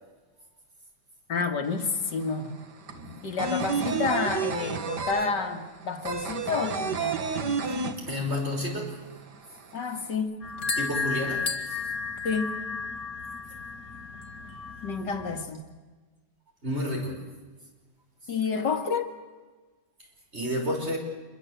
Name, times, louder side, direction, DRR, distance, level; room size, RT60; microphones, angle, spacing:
voice 1, 1.3-2.5 3.2-7.2 9.7-10.4 12.2-12.6 14.8-15.6 18.3-19.1, left 5 dB, 75° left, 6 dB, 2.5 m, -29 dB
sound 1, 1.6-1.7 2.0-8.6 8.8-8.9 9.3-10.1, right 5 dB, 70° right, 2.3 m, -30 dB
voice 2, 8.0-9.0 10.8-11.5 12.0-12.1 16.6-17.2 20.3-21.0, left 1 dB, 35° right, 1 dB, 6.0 m, -30 dB
sound 2, 10.4-15.4, left 4 dB, 55° left, 2.6 m, -33 dB
26.5 x 23.0 x 8.1 m, 1.3 s
omnidirectional pair, 1.9 m